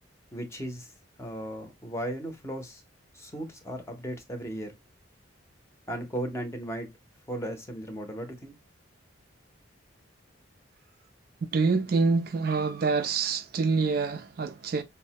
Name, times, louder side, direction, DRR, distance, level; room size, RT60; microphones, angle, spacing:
voice 1, 0.3-0.9 1.2-2.8 3.1-4.7 5.9-6.9 7.3-8.5, right 1 dB, 15° left, 0.6 m, -36 dB
voice 2, 11.5-14.8, right 4 dB, 50° right, 0.3 m, -26 dB
5.3 x 2.1 x 2.8 m
head